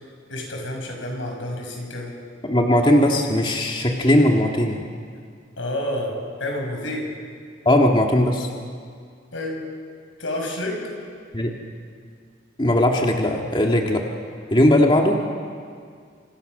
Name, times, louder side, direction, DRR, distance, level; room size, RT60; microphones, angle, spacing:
voice 1, 0.0-2.1 5.6-7.1 9.3-9.7 10.2-10.8, left 1 dB, 90° left, 1 dB, 6.6 m, -29 dB
voice 2, 2.4-4.8 7.7-8.5 11.3-11.5 12.6-14.1 14.5-15.2, left 1 dB, 25° left, 1 dB, 1.9 m, -18 dB
29.5 x 27.5 x 6.6 m, 2.2 s
head